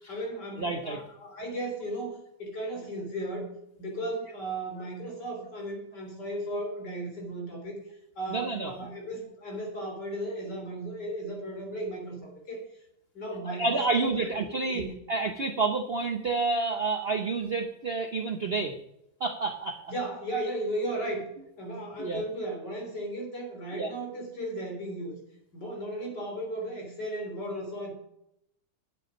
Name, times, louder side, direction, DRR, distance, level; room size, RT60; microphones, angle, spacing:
voice 1, 0.1-3.5 3.8-7.8 8.2-12.6 13.1-14.3 14.7-14.9 19.9-21.2 21.6-25.1 25.5-27.9, right 1 dB, 55° left, 1 dB, 4.1 m, -35 dB
voice 2, 0.6-1.0 8.3-8.7 13.5-14.8 15.1-18.7 19.2-19.9 22.0-22.2 23.7-23.9, right 3 dB, 80° right, 5 dB, 0.5 m, -29 dB
10.5 x 7.8 x 5.3 m, 0.79 s
omnidirectional pair, 2.3 m